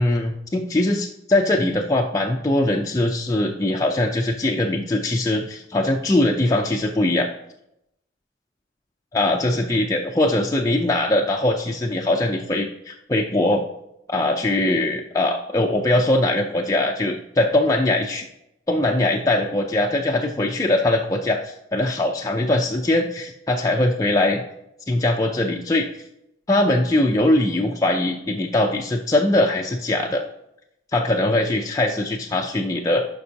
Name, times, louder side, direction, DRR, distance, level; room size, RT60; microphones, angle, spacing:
voice 1, 0.0-7.3 9.1-13.6 14.1-18.3 18.7-24.4 24.9-25.9 26.5-30.2 30.9-33.1, left 1 dB, 20° left, 0 dB, 0.4 m, -21 dB
11.0 x 5.3 x 2.8 m, 0.82 s
head